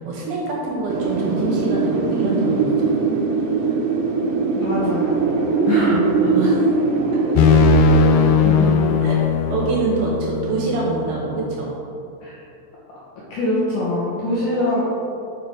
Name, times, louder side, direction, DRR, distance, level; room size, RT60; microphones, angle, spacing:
voice 1, 0.0-2.9 6.3-6.6 7.0-7.4 7.9-8.7 9.0-11.7, right 3 dB, 70° right, -3 dB, 2.8 m, -25 dB
Wind, 0.9-9.6, right 4 dB, 85° right, 2.9 m, -21 dB
voice 2, 1.9-2.3 4.6-5.2 5.7-6.3 8.4-8.7 12.2-12.4 13.3-14.8, left 2 dB, 70° left, -6 dB, 2.1 m, -24 dB
sound 1, 7.4-11.1, left 4 dB, 90° left, 2.1 m, -17 dB
8.1 x 5.9 x 4.7 m, 2.8 s
omnidirectional pair, 4.8 m